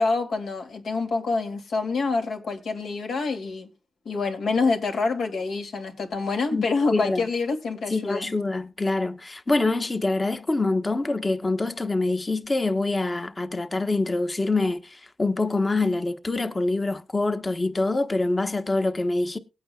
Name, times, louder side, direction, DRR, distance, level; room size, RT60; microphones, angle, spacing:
voice 1, 0.0-3.7 4.0-8.3, left 4 dB, 80° left, 2.5 m, -26 dB
voice 2, 6.9-7.2 7.9-19.4, left 2 dB, 30° left, 1.1 m, -25 dB
19.5 x 8.7 x 2.3 m
cardioid pair, 80°, 0 cm